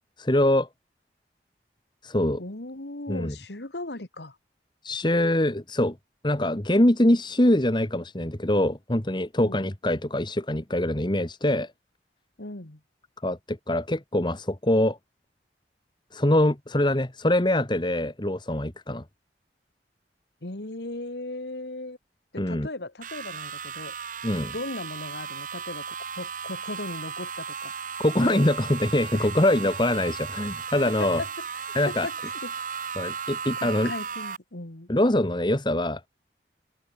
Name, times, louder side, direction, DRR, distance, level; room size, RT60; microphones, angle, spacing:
voice 1, 0.2-0.7 2.0-2.4 3.1-3.3 4.8-6.0 6.2-11.7 13.2-15.0 16.1-19.0 22.4-22.7 24.2-24.5 28.0-31.2 31.7-32.1 33.0-33.9 34.9-36.1, left 1 dB, 25° left, 1.6 m, -24 dB
voice 2, 2.4-4.4 9.4-9.6 12.4-12.8 20.4-22.0 22.3-23.9 24.3-27.7 28.2-28.5 29.1-29.3 30.9-31.3 31.9-32.5 33.6-34.9, left 2 dB, 75° left, 2.1 m, -37 dB
sound 1, 23.0-34.4, right 6 dB, 50° right, 1.5 m, -35 dB
head